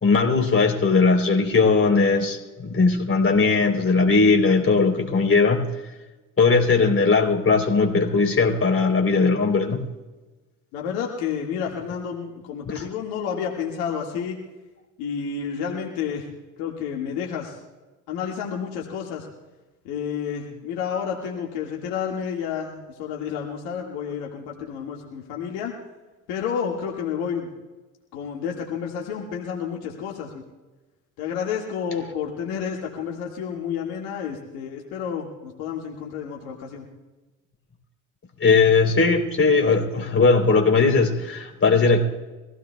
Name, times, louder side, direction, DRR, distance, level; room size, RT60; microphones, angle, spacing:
voice 1, 0.0-5.6 6.4-9.8 12.7-12.9 38.4-42.0, left 4 dB, 35° left, 1 dB, 3.5 m, -19 dB
voice 2, 10.7-14.4 15.0-16.3 16.6-17.6 18.1-19.3 19.9-25.7 26.3-27.5 28.1-30.4 31.2-36.9, left 7 dB, 75° left, -1 dB, 1.9 m, -30 dB
24.0 x 16.0 x 2.3 m, 1.2 s
hypercardioid pair, 60°, 39 cm